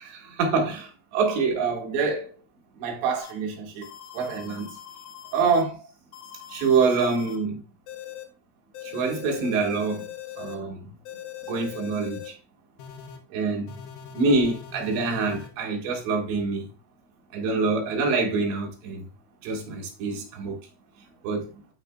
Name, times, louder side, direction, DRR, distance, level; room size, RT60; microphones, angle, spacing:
voice 1, 0.0-2.3 2.8-3.9 4.1-4.8 5.3-5.9 6.5-7.6 8.8-10.1 10.4-10.9 11.5-12.3 13.3-13.8 14.1-16.7 17.3-19.1 19.4-20.6 21.2-21.5, right 4 dB, 70° right, 3.8 m, -26 dB
sound 1, 3.2-3.3 3.8-5.6 6.1-7.4 7.9-8.2 8.7-10.6 11.1-12.3 12.8-13.2 13.7-15.5, left 10 dB, 80° left, 2.2 m, -41 dB
12.0 x 4.9 x 2.3 m
omnidirectional pair, 5.6 m